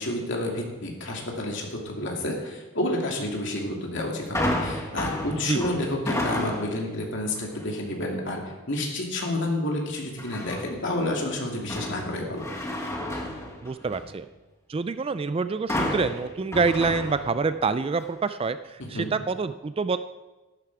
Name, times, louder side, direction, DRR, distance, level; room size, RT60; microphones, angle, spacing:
voice 1, 0.0-8.4 8.7-12.5 18.8-19.1, left 1 dB, 55° left, 0 dB, 2.7 m, -30 dB
sound 1, 4.3-6.9 7.3-7.7 10.2-10.9 11.3-14.2 15.7-17.6 18.0-18.1, left 1 dB, 15° left, 1.6 m, -31 dB
voice 2, 13.6-14.3 14.7-20.0, right 4 dB, 25° right, 12 dB, 0.3 m, -26 dB
12.5 x 11.5 x 4.8 m, 1.2 s
head